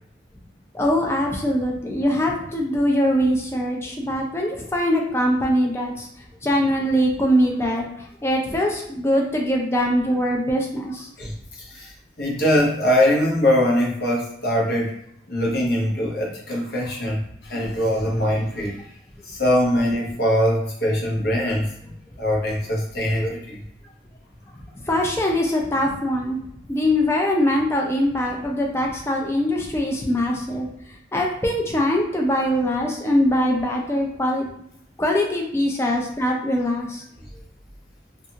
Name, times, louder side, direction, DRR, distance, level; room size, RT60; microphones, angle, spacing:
voice 1, 0.7-6.1 6.4-7.9 8.2-11.1 24.8-26.4 26.7-30.7 31.1-34.5 35.0-37.0, equal, 15° left, 0 dB, 0.4 m, -22 dB
voice 2, 11.2-15.0 15.3-18.8 19.2-23.6 37.2-37.3, equal, 60° left, -2 dB, 0.7 m, -22 dB
2.6 x 2.3 x 2.7 m, 0.73 s
head